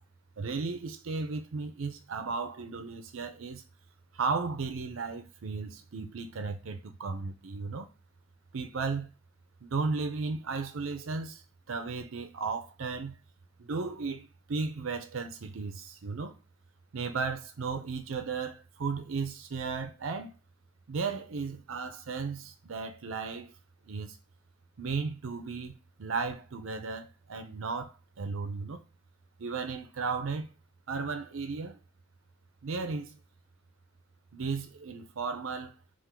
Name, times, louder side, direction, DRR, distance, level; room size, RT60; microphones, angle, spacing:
voice 1, 0.4-3.6 4.1-7.9 8.5-9.1 9.6-11.4 11.7-13.2 13.6-16.3 16.9-20.3 20.9-23.5 23.9-24.2 24.8-28.8 29.4-30.5 30.9-31.8 32.6-33.2 34.3-35.7, right 4 dB, 75° right, 0.6 m, -35 dB
3.7 x 2.5 x 4.5 m
head